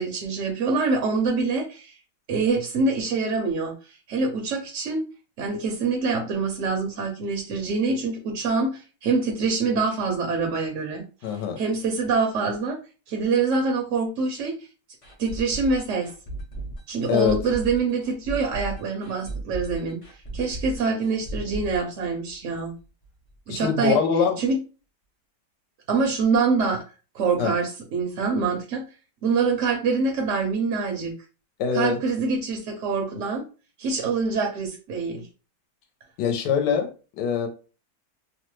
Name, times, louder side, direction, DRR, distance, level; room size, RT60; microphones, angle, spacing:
voice 1, 0.0-1.9 2.3-3.7 4.1-5.0 5.4-11.0 11.6-12.8 13.1-14.5 15.2-16.1 16.9-20.0 20.3-22.7 23.5-24.0 24.4-24.6 25.9-26.8 27.1-28.8 29.2-31.1 31.7-33.4 33.8-35.3, right 4 dB, 65° right, 2 dB, 0.8 m, -25 dB
voice 2, 11.2-11.6 17.1-17.4 23.5-24.4 27.4-27.5 31.6-32.0 36.2-36.9 37.2-37.5, left 7 dB, 75° left, 5 dB, 1.2 m, -23 dB
sound 1, 15.0-22.8 23.0-23.1 23.5-23.6, right 2 dB, 40° left, 0.4 m, -35 dB
3.0 x 2.1 x 3.1 m, 0.34 s
omnidirectional pair, 1.9 m